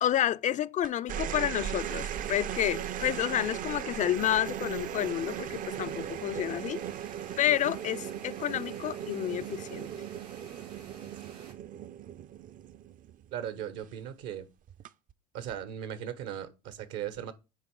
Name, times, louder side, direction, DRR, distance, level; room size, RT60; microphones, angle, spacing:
voice 1, 0.0-6.8 7.4-9.9, left 11 dB, 40° left, 0.4 m, -30 dB
sound 1, 0.8-13.4 14.7-15.1, right 10 dB, 45° right, 0.5 m, -38 dB
sound 2, 1.8-11.5, right 5 dB, 85° right, 1.6 m, -52 dB
voice 2, 13.3-14.5 15.3-17.3, right 10 dB, 70° right, 1.1 m, -37 dB
9.2 x 3.2 x 4.7 m
hypercardioid pair, 75°, 20 cm